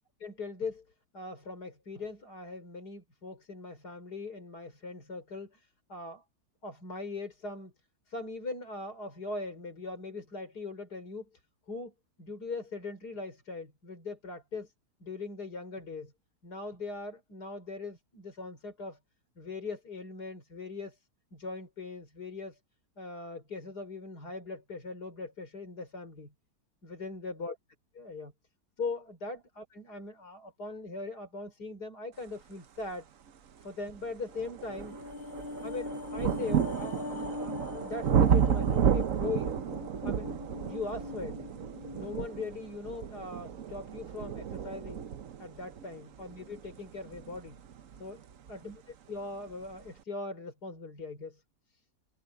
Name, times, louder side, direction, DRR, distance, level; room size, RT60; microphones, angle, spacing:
voice 1, 0.2-0.9 1.1-6.2 6.6-7.7 8.1-11.4 11.7-14.7 15.0-16.1 16.4-19.0 19.4-21.0 21.3-22.6 23.0-26.3 26.8-27.6 27.9-28.3 28.8-33.1 33.6-35.0 35.6-39.6 40.0-40.3 40.7-41.5 41.9-45.1 45.4-47.5 48.0-48.2 48.5-51.4, left 3 dB, 80° left, 5.3 m, -40 dB
sound 1, 33.3-33.4 34.0-48.6 49.5-49.6, right 8 dB, 60° right, 1.2 m, -32 dB
sound 2, 34.6-43.1 43.4-43.5, left 3 dB, 45° left, 0.9 m, -42 dB
omnidirectional pair, 1.7 m